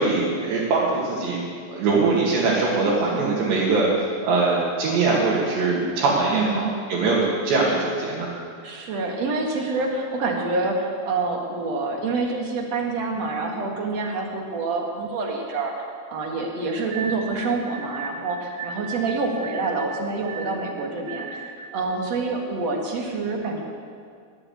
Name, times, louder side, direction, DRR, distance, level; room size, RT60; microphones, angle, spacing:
voice 1, 0.0-3.9 4.2-8.3, right 3 dB, 75° right, -6 dB, 4.3 m, -22 dB
voice 2, 6.3-6.7 8.6-23.6, right 3 dB, 50° right, 1 dB, 2.2 m, -27 dB
sound 1, 16.9-21.8, right 4 dB, 90° right, 1.4 m, -36 dB
21.0 x 7.7 x 8.3 m, 2.2 s
omnidirectional pair, 5.1 m